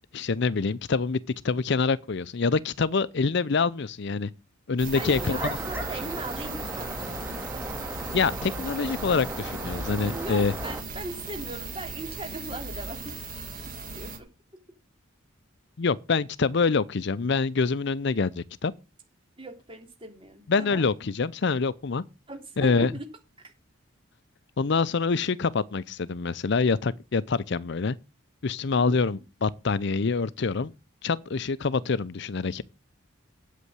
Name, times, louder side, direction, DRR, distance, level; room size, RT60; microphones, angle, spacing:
voice 1, 0.1-1.2 1.4-4.3 4.7-5.4 8.1-10.5 15.8-18.7 20.5-22.0 22.6-22.9 24.6-28.0 28.4-30.7 31.0-32.6, left 4 dB, 55° left, 0.5 m, -26 dB
sound 1, 4.8-14.2, right 4 dB, 45° right, 2.2 m, -38 dB
sound 2, 4.9-10.8, equal, 10° right, 2.4 m, -35 dB
voice 2, 4.9-7.1 10.1-13.0 13.9-14.3 19.4-20.9 22.3-23.0 28.7-29.2 31.8-31.9, right 2 dB, 25° right, 3.2 m, -39 dB
8.4 x 8.4 x 7.8 m
head